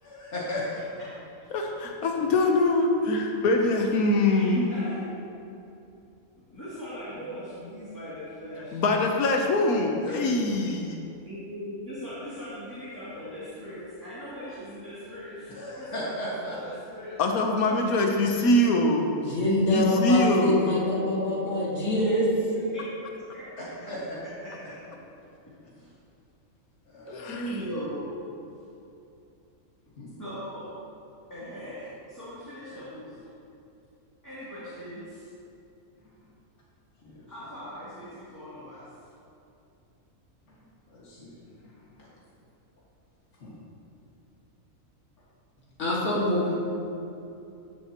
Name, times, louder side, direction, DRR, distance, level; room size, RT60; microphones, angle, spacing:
voice 1, 0.0-0.8 10.0-10.1 15.6-16.6 23.9-24.2 26.9-27.6 30.0-30.1 37.0-37.3 40.5-40.6 40.9-41.3 41.6-42.1 43.4-43.6, left 1 dB, 55° left, -7 dB, 2.1 m, -36 dB
voice 2, 1.5-4.9 8.7-11.0 17.2-19.1 19.7-20.6 27.1-27.6, left 2 dB, 85° left, 2 dB, 1.3 m, -23 dB
voice 3, 4.2-5.1 6.4-8.8 10.1-10.4 11.2-16.1 16.4-17.2 21.9-22.0 22.3-23.1 23.3-23.9 24.2-24.8 25.7-25.9 27.5-28.3 30.2-30.7 31.3-33.2 34.2-35.3 37.3-38.9, equal, 15° left, -13 dB, 2.4 m, -40 dB
voice 4, 19.2-22.3 45.8-46.5, left 1 dB, 70° left, -6 dB, 2.4 m, -25 dB
15.0 x 7.5 x 2.9 m, 2.7 s
omnidirectional pair, 1.5 m